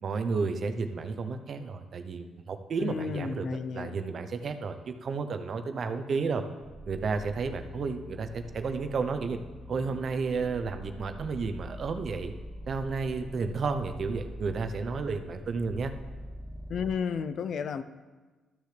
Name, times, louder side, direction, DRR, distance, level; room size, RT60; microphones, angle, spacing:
voice 1, 0.0-3.5 3.7-6.4 6.9-9.4 9.7-12.3 12.7-15.9, right 4 dB, 50° right, 0.7 m, -32 dB
voice 2, 2.8-4.0 16.7-17.8, left 6 dB, 60° left, 0.4 m, -32 dB
sound 1, 6.6-17.0, equal, 15° left, 0.7 m, -44 dB
13.5 x 6.4 x 3.3 m
cardioid pair, 90°, 0 cm